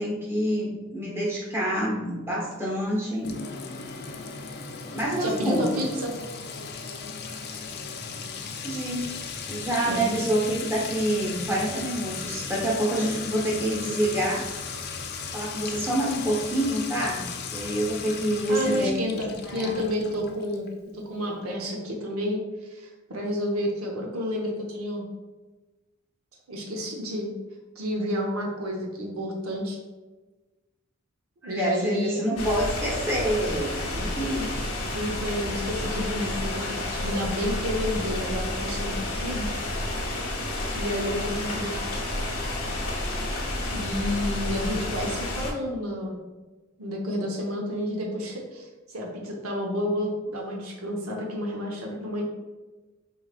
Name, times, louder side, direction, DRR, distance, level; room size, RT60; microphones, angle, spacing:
voice 1, 0.0-3.4 4.9-5.8 8.6-9.1 9.5-14.5 15.3-17.2 17.5-19.1 19.5-19.7 31.4-34.6, right 1 dB, 10° right, -5 dB, 0.9 m, -27 dB
Sink (filling or washing) / Trickle dribble / Fill (with liquid), 3.2-20.7, left 5 dB, 50° left, 0.4 m, -36 dB
voice 2, 5.2-6.1 9.9-10.2 18.5-22.4 22.7-25.0 26.5-27.3 27.8-29.8 31.4-32.2 34.4-34.6 34.9-39.5 40.7-41.9 43.7-46.2 46.8-48.7 48.9-52.2, equal, 80° right, -1 dB, 0.8 m, -30 dB
sound 1, 32.4-45.5, left 1 dB, 90° left, 0.9 m, -30 dB
4.6 x 3.1 x 2.4 m, 1.2 s
head